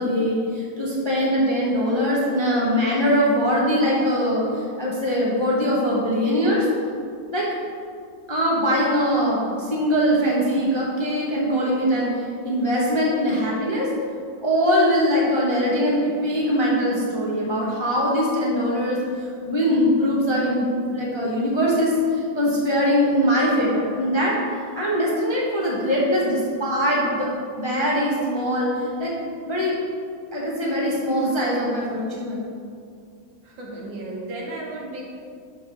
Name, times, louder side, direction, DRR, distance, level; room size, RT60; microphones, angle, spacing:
voice 1, 0.0-6.7 7.3-7.5 8.3-13.9 14.4-24.4 24.8-27.3 27.6-29.1 29.5-29.8 30.3-32.5, equal, 20° left, -5 dB, 0.7 m, -22 dB
voice 2, 33.4-35.0, right 2 dB, 80° right, -3 dB, 2.1 m, -34 dB
5.7 x 5.2 x 6.0 m, 2.3 s
omnidirectional pair, 2.0 m